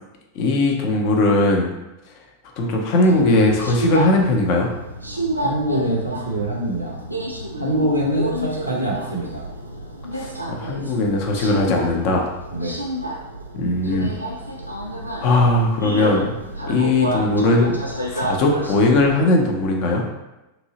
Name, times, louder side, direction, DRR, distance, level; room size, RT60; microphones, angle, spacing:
voice 1, 0.3-1.7 2.6-4.7 10.1-12.3 13.5-14.1 15.2-16.3 16.7-17.8 18.1-20.0, left 2 dB, 45° left, 1 dB, 0.6 m, -19 dB
Subway metro underground, 3.0-19.2, right 1 dB, 85° right, 0.3 m, -29 dB
voice 2, 5.4-7.0 7.6-9.4 12.5-12.8, right 1 dB, 90° left, -4 dB, 0.7 m, -24 dB
2.9 x 2.7 x 2.8 m, 1.0 s
figure-of-eight pair, 90°, 0 cm